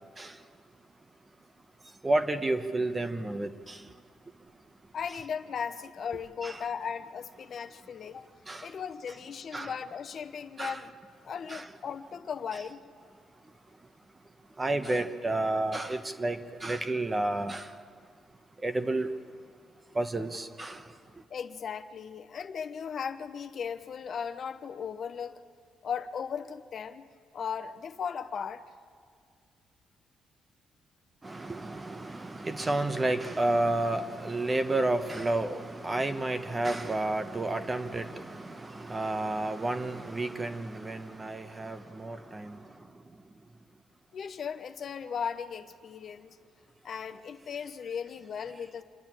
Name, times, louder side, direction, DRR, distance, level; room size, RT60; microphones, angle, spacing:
voice 1, 2.0-3.8 6.4-6.6 8.5-8.7 9.5-9.7 10.6-10.8 11.5-11.7 14.6-17.6 18.6-19.1 20.0-20.8 31.2-42.6, right 2 dB, 25° right, 8 dB, 1.1 m, -31 dB
voice 2, 4.9-8.3 8.6-10.9 11.2-12.8 21.3-25.4 25.8-27.0 27.3-28.6 44.1-46.4 46.8-48.8, left 7 dB, 55° left, 8 dB, 0.9 m, -37 dB
27.5 x 10.5 x 9.0 m, 2.1 s
cardioid pair, 90°, 0 cm